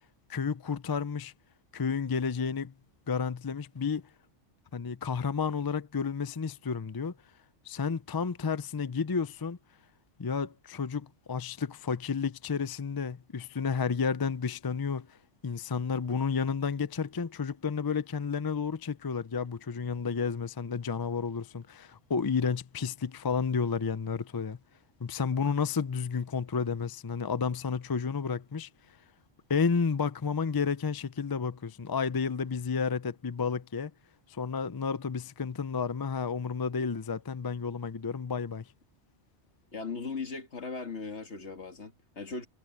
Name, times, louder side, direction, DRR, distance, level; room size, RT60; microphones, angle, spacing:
voice 1, 0.3-1.3 1.7-2.7 3.1-4.0 4.7-7.1 7.6-9.6 10.2-15.1 15.4-24.6 25.0-28.7 29.5-33.9 34.3-38.7, left 5 dB, 35° left, 0.4 m, -31 dB
voice 2, 39.7-42.5, left 4 dB, 65° left, 2.2 m, -38 dB
omnidirectional pair, 1.2 m